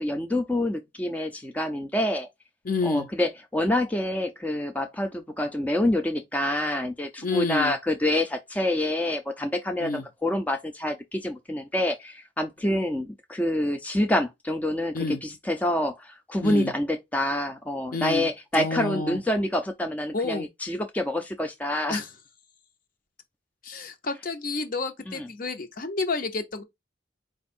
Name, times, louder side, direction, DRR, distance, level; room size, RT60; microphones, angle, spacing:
voice 1, 0.0-2.3 2.8-22.0 25.1-25.3, left 1 dB, 10° left, 0.4 m, -27 dB
voice 2, 2.6-3.1 7.2-7.7 9.8-10.0 14.9-15.2 16.4-16.7 17.9-18.3 18.5-19.2 20.1-20.5 21.9-22.1 23.6-26.6, left 3 dB, 50° left, 0.8 m, -29 dB
4.4 x 2.4 x 4.2 m
head